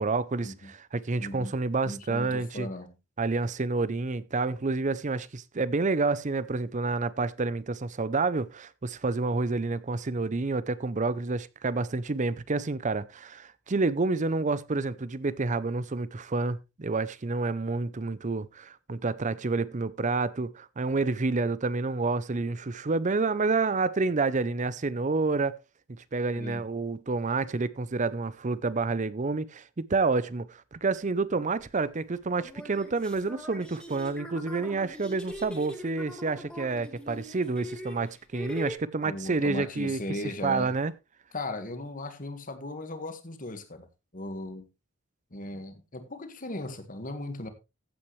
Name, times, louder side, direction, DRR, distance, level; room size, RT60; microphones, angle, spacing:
voice 1, 0.0-2.7 3.2-25.6 26.1-40.0 40.4-40.9, right 3 dB, 35° right, 0.6 m, -29 dB
voice 2, 1.2-1.5 1.8-2.9 26.4-26.6 39.0-40.7 41.3-43.9 44.1-44.7 45.3-47.5, left 2 dB, 40° left, 1.7 m, -37 dB
sound 1, 31.6-31.7 32.4-38.7, equal, 5° left, 2.6 m, -41 dB
15.0 x 8.7 x 3.2 m
head